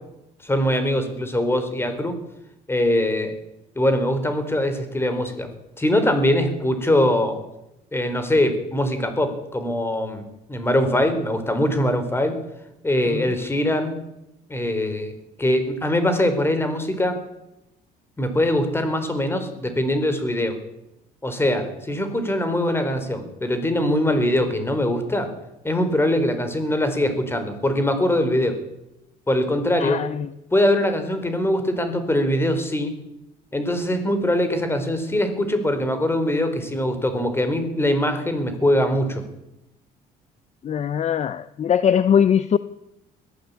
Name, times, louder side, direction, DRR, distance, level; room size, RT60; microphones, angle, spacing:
voice 1, 0.4-2.1 2.7-3.3 3.8-5.5 5.8-7.4 7.9-10.2 10.5-12.4 12.8-14.0 14.5-15.1 15.4-17.2 18.2-20.6 21.2-25.3 25.6-28.6 29.3-30.0 30.5-32.9 33.5-39.2, left 1 dB, 15° left, 4.6 m, -22 dB
voice 2, 29.8-30.3 40.6-42.6, left 8 dB, 40° left, 0.8 m, -21 dB
21.0 x 15.5 x 8.6 m
cardioid pair, 110°, 17 cm